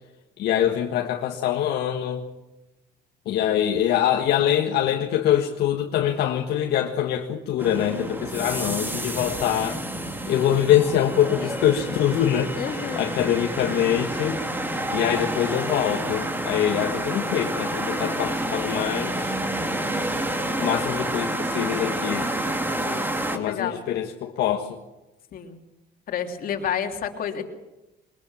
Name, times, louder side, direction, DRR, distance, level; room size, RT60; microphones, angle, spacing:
voice 1, 0.4-2.2 3.2-9.8 10.3-14.4 14.9-19.4 20.6-22.3 23.3-24.8, left 10 dB, 75° left, 2 dB, 1.7 m, -24 dB
sound 1, 7.6-23.4, right 1 dB, 10° right, 2.4 m, -29 dB
voice 2, 12.6-13.3 19.6-19.9 22.7-23.1 23.4-23.8 25.3-25.6 26.1-27.4, left 8 dB, 60° left, 3 dB, 3.1 m, -31 dB
22.0 x 20.5 x 7.4 m, 1.0 s
cardioid pair, 110°, 17 cm